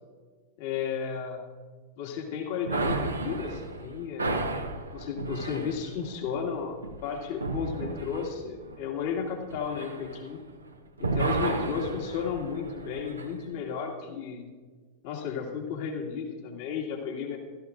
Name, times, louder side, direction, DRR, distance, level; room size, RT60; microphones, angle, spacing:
voice 1, 0.6-1.4 2.0-4.6 4.9-6.8 7.0-10.4 11.0-14.5 15.0-17.4, left 7 dB, 50° left, 1 dB, 2.2 m, -33 dB
sound 1, 2.7-10.7 11.0-13.3, right 3 dB, 75° right, 0.9 m, -33 dB
16.0 x 13.5 x 2.6 m, 1.5 s
figure-of-eight pair, 90°, 0 cm